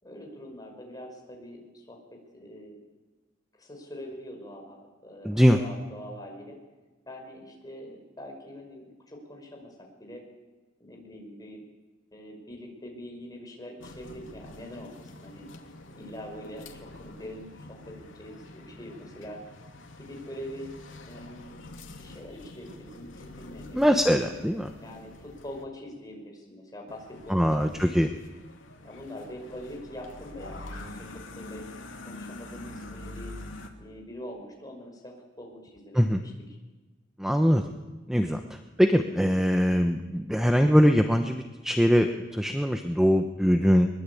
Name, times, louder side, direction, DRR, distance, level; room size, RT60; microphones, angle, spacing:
voice 1, 0.0-2.8 3.6-6.6 7.1-10.2 10.8-11.6 12.1-15.5 15.9-19.4 20.0-20.7 21.1-21.6 22.0-24.0 24.8-27.8 28.8-31.1 31.4-31.6 32.1-33.3 33.8-36.3, equal, 20° left, 1 dB, 5.4 m, -43 dB
voice 2, 5.2-5.6 23.7-24.7 27.3-28.1 35.9-36.2 37.2-37.7 38.1-43.9, equal, ahead, 6 dB, 1.0 m, -22 dB
sound 1, 13.8-25.6 26.9-33.7, left 2 dB, 75° left, 2.6 m, -45 dB
22.0 x 21.5 x 8.5 m, 1.2 s
head